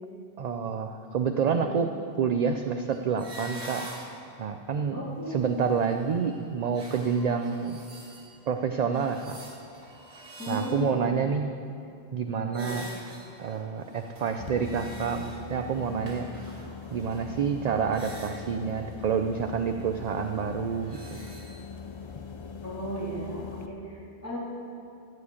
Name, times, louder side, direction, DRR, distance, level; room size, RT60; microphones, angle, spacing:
voice 1, 0.4-1.9 2.2-3.8 4.4-7.8 8.5-9.4 10.5-11.5 12.1-12.9 13.4-16.3 16.9-21.2, right 6 dB, 55° right, 6 dB, 0.5 m, -28 dB
sound 1, 2.9-4.5 5.1-8.5 8.9-11.2 12.5-18.6 19.9-21.6, right 1 dB, 75° right, 2.0 m, -47 dB
voice 2, 4.9-5.3 10.4-11.0 12.5-12.7 22.6-24.4, equal, 15° left, -8 dB, 3.5 m, -36 dB
sound 2, 14.4-23.7, left 5 dB, 35° left, 0.5 m, -41 dB
14.5 x 5.0 x 8.4 m, 2.7 s
omnidirectional pair, 1.1 m